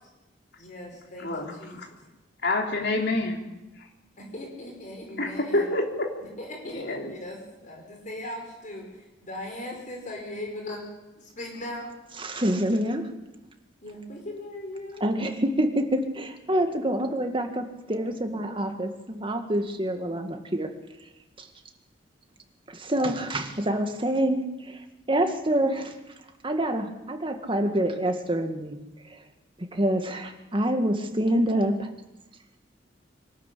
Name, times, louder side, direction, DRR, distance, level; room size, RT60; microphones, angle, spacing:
voice 1, 0.6-1.8 4.2-5.7 6.2-10.8 11.2-11.9 13.8-15.0, left 1 dB, 45° left, 1 dB, 5.3 m, -39 dB
voice 2, 1.2-1.9 2.4-3.4 5.2-6.1 6.7-7.1, left 2 dB, 65° left, 2 dB, 3.5 m, -27 dB
voice 3, 12.2-13.0 15.0-20.7 22.7-24.8 25.1-25.9 26.4-28.8 29.7-31.9, right 1 dB, 30° right, 5 dB, 2.0 m, -26 dB
24.5 x 13.0 x 8.5 m, 1.0 s
head